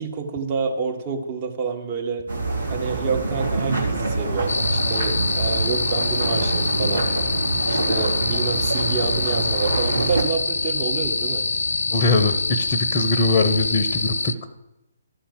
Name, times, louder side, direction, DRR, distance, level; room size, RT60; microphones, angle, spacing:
voice 1, 0.0-2.3 2.7-7.1 7.7-11.5, right 5 dB, 30° right, 2 dB, 1.5 m, -28 dB
sound 1, 2.3-10.2, right 3 dB, 70° right, 2.7 m, -25 dB
sound 2, 4.5-14.3, left 3 dB, 60° left, 0.4 m, -25 dB
voice 2, 11.9-14.3, left 3 dB, 25° left, 7 dB, 0.9 m, -21 dB
13.0 x 5.6 x 7.6 m, 0.92 s
figure-of-eight pair, 135°, 0 cm